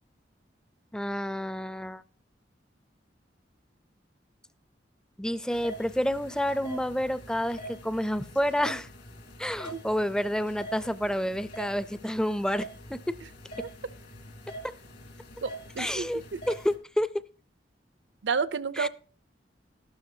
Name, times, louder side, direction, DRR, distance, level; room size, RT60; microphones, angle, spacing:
voice 1, 0.9-2.0 5.2-8.9 9.4-13.2 15.8-16.2 16.5-17.2 18.8-18.9, equal, 5° left, 15 dB, 0.4 m, -29 dB
sound 1, 5.5-16.7, right 1 dB, 65° left, 2.9 m, -45 dB
voice 2, 15.4-16.4 18.2-18.9, right 5 dB, 80° right, 16 dB, 0.5 m, -30 dB
13.5 x 12.0 x 2.7 m, 0.40 s
head